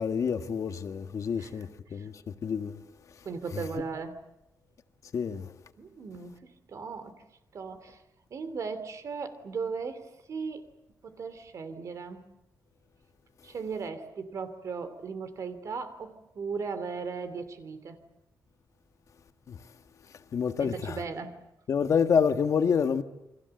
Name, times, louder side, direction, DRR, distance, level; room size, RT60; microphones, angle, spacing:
voice 1, 0.0-2.1 2.4-2.8 3.5-3.6 5.1-5.5 19.5-19.6 20.3-21.0 21.7-23.0, left 6 dB, 55° left, 1.5 m, -27 dB
voice 2, 3.2-4.2 5.8-7.1 7.5-8.0 8.3-10.6 11.0-12.3 13.4-18.0 20.6-21.4, right 5 dB, 50° right, 3.0 m, -37 dB
28.5 x 24.5 x 7.8 m
wide cardioid pair, 150°, 7 cm